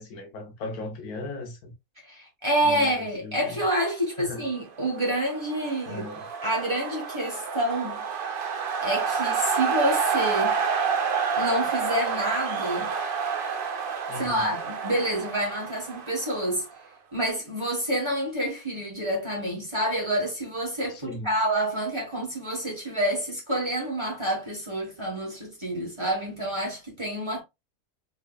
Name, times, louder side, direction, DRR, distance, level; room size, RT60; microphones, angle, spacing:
voice 1, 0.0-1.7 2.6-3.6 4.2-4.5 5.9-6.3 14.1-14.5 20.9-21.4, left 2 dB, 80° left, 1.3 m, -38 dB
voice 2, 2.1-6.0 6.4-8.0 8.8-10.6 11.4-12.9 14.2-16.7 17.1-27.4, right 1 dB, 20° right, 1.4 m, -28 dB
sound 1, 4.8-16.8, right 6 dB, 50° right, 0.6 m, -29 dB
3.6 x 3.2 x 2.2 m
omnidirectional pair, 1.6 m